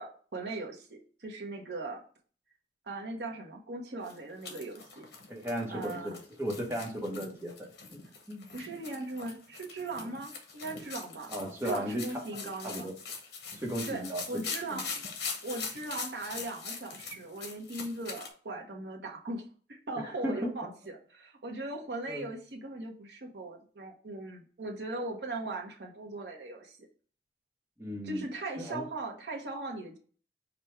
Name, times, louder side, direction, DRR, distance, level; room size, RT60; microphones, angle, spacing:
voice 1, 0.0-2.0 2.9-5.0 5.7-6.2 8.5-11.3 11.6-12.9 13.9-14.8 15.4-19.4 19.7-26.8 28.0-30.0, right 2 dB, 75° right, 1 dB, 0.9 m, -39 dB
sound 1, 4.0-18.3, left 5 dB, 75° left, 0.9 m, -42 dB
voice 2, 5.3-7.5 8.3-8.5 11.3-12.9 13.5-14.2 14.7-14.8 20.0-20.5 22.1-22.3 27.8-28.3 28.6-28.9, equal, 15° right, -2 dB, 0.9 m, -36 dB
5.0 x 2.2 x 4.4 m, 0.42 s
head